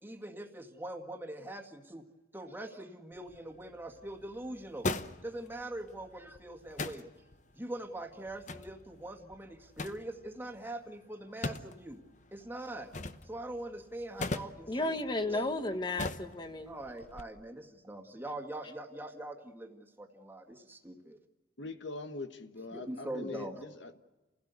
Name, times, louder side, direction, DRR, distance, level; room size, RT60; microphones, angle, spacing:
voice 1, 0.0-2.0 2.3-4.9 5.2-12.0 12.3-12.9 13.2-15.0 15.3-15.5 16.7-21.2 22.7-23.8, right 1 dB, 10° right, 1.9 m, -43 dB
sound 1, 3.1-17.2, left 2 dB, 40° left, 0.9 m, -43 dB
voice 2, 14.7-16.7, left 2 dB, 25° left, 1.5 m, -33 dB
voice 3, 21.6-24.0, left 2 dB, 75° left, 1.4 m, -42 dB
29.5 x 16.5 x 8.2 m
head